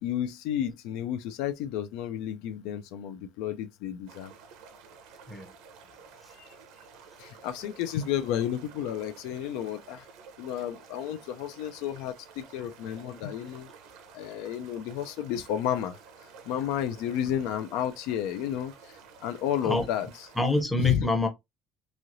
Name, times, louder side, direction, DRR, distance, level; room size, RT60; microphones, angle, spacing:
voice 1, 0.0-4.3 6.4-6.5 7.2-10.1 10.4-13.7 14.1-16.0 16.5-20.1 20.8-21.1, left 10 dB, 85° left, 0.4 m, -32 dB
sound 1, 4.1-20.6, right 6 dB, 80° right, 0.6 m, -52 dB
voice 2, 20.4-21.3, left 1 dB, 10° left, 0.6 m, -27 dB
3.1 x 2.8 x 2.5 m
cardioid pair, 155°, 0 cm